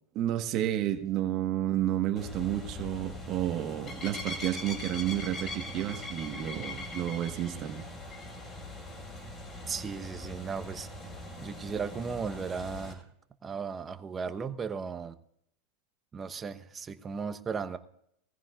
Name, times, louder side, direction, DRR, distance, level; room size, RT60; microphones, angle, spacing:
voice 1, 0.1-7.9, right 12 dB, 45° right, 6 dB, 1.3 m, -31 dB
sound 1, 2.2-12.9, left 2 dB, 25° left, 5.2 m, -41 dB
voice 2, 9.7-10.9 11.4-13.0 13.4-15.1 16.1-17.8, right 5 dB, 25° right, 10 dB, 0.9 m, -36 dB
20.5 x 15.0 x 2.4 m, 0.74 s
hypercardioid pair, 100°, 0 cm